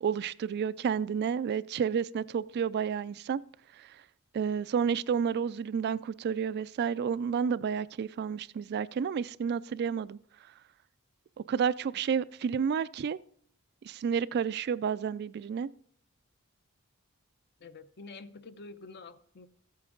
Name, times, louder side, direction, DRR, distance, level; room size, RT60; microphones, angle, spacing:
voice 1, 0.0-3.4 3.8-3.9 4.3-10.2 11.5-13.2 13.8-15.7, right 7 dB, 50° right, 0.3 m, -30 dB
voice 2, 17.6-19.5, left 3 dB, 50° left, 0.7 m, -47 dB
13.5 x 8.5 x 3.8 m
head